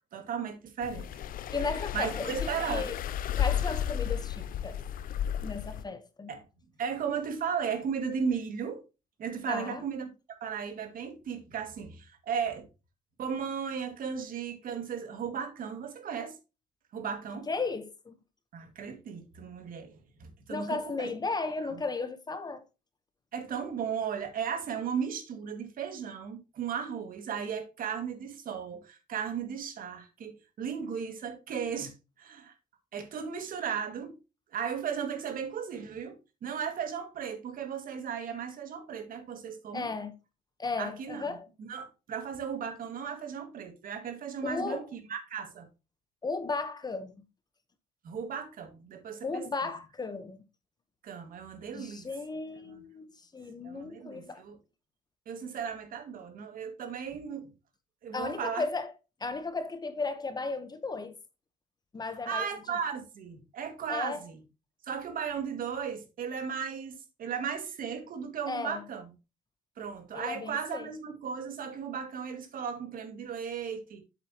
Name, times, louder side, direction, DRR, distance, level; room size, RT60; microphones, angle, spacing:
voice 1, 0.1-1.1 1.9-2.9 6.3-6.4 6.8-8.8 9.2-10.1 10.4-12.7 13.2-16.4 16.9-17.5 18.5-21.1 23.3-32.5 32.9-34.2 34.5-39.9 40.8-41.3 41.6-45.7 48.0-49.5 51.0-52.0 52.7-52.8 53.6-54.6 55.3-57.5 58.0-58.7 62.3-64.4 64.8-69.0 69.8-74.0, right 7 dB, 55° right, 2.3 m, -36 dB
sound 1, 0.8-5.8, left 9 dB, 55° left, 0.6 m, -33 dB
voice 2, 1.5-3.0 3.4-4.8 5.4-6.3 9.5-9.8 17.5-18.2 20.5-22.6 39.7-40.1 40.6-41.5 44.4-44.9 46.2-47.1 49.2-50.4 51.7-54.4 58.1-58.9 59.2-61.2 61.9-62.5 63.9-64.3 68.5-68.8 70.1-70.9, left 3 dB, 25° left, 1.1 m, -35 dB
8.1 x 7.6 x 3.0 m
cardioid pair, 110°, 17 cm